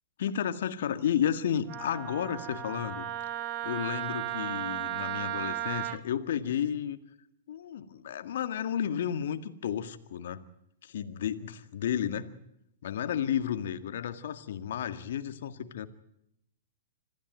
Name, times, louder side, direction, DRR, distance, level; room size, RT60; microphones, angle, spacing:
voice 1, 0.2-3.0 3.3-7.0 7.5-10.4 10.8-12.4 12.8-15.9, left 9 dB, 65° left, 10 dB, 1.8 m, -32 dB
Wind instrument woodwind instrument, 1.7-6.0, right 12 dB, 40° right, 2.1 m, -35 dB
26.0 x 15.0 x 9.1 m, 0.78 s
hypercardioid pair, 115°, 0 cm